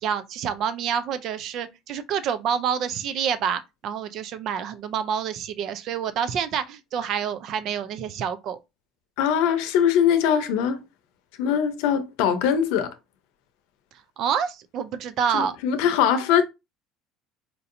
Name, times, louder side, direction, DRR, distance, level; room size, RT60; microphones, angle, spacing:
voice 1, 0.0-8.6 14.2-15.5, right 8 dB, 60° right, 0.5 m, -27 dB
voice 2, 9.2-10.8 11.4-12.9 15.3-16.4, left 8 dB, 80° left, 0.7 m, -21 dB
4.3 x 2.7 x 2.6 m
supercardioid pair, 105°, 0 cm